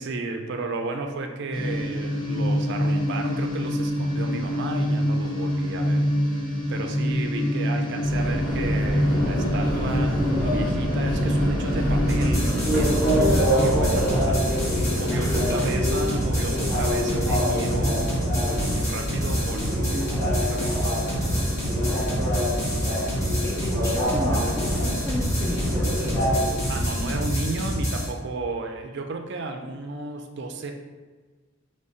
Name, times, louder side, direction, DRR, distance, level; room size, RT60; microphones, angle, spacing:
voice 1, 0.0-14.4 14.9-21.5 22.1-22.6 26.7-30.7, right 3 dB, 55° right, 4 dB, 0.4 m, -33 dB
sound 1, 1.5-12.5, left 1 dB, 80° left, 1.1 m, -25 dB
Subway metro underground, 8.0-27.3, equal, 5° right, 1.2 m, -26 dB
sound 2, 12.1-28.1, equal, 35° left, 1.4 m, -27 dB
voice 2, 15.1-15.8 23.2-26.4, equal, 15° left, -2 dB, 0.6 m, -33 dB
4.8 x 3.2 x 2.8 m, 1.4 s
head